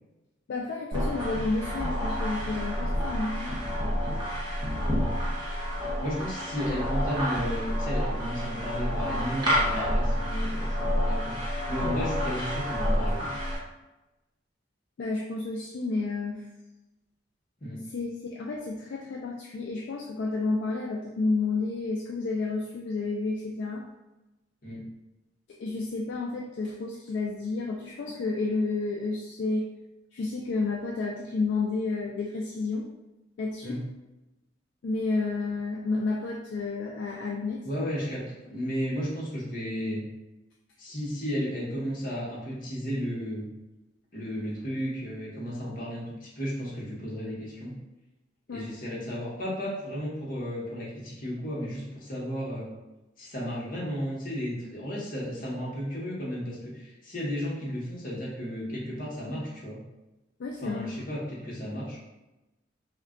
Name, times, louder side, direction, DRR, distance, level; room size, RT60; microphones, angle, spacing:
voice 1, 0.5-3.6 15.0-16.5 17.9-23.8 25.6-29.7 30.1-32.9 33.4-33.8 34.8-37.7 48.5-48.7 60.4-60.9, left 3 dB, 65° left, -1 dB, 0.3 m, -31 dB
sound 1, 0.9-13.6, equal, 25° right, 0.7 m, -29 dB
voice 2, 6.0-13.3 17.6-17.8 24.6-24.9 33.6-33.8 37.6-40.0 40.8-43.5 44.1-47.7 48.5-52.7 53.2-59.8 60.6-62.0, equal, 45° left, -6 dB, 0.9 m, -34 dB
2.3 x 2.2 x 3.6 m, 1.0 s
head